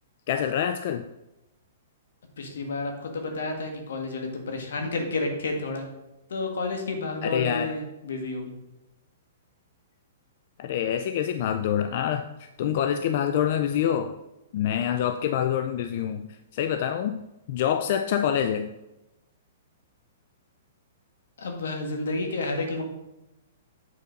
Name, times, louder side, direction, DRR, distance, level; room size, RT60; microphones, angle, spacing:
voice 1, 0.3-1.1 7.2-7.7 10.6-14.2 14.5-17.2 17.5-18.7, left 9 dB, 50° left, 9 dB, 0.4 m, -26 dB
voice 2, 2.4-5.9 6.3-8.5 21.4-22.8, left 2 dB, 85° left, 3 dB, 1.7 m, -30 dB
7.6 x 4.0 x 5.2 m, 0.95 s
hypercardioid pair, 150°, 0 cm